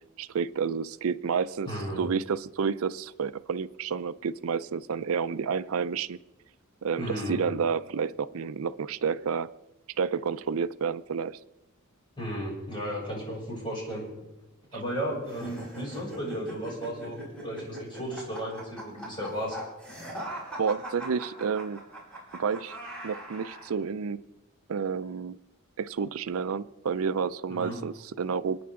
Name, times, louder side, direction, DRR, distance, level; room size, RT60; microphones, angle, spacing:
voice 1, 0.2-6.2 6.8-9.5 10.0-11.4 20.6-21.8 22.3-22.8 23.0-24.2 24.7-25.4 25.8-28.6, right 6 dB, 75° right, 14 dB, 0.5 m, -30 dB
voice 2, 1.6-2.0 7.0-7.4 12.2-14.0 14.7-19.6 27.5-27.8, equal, 25° left, -4 dB, 6.4 m, -34 dB
sound 1, 15.3-23.7, right 1 dB, 5° left, 5.5 m, -41 dB
28.5 x 9.6 x 3.7 m, 1.0 s
head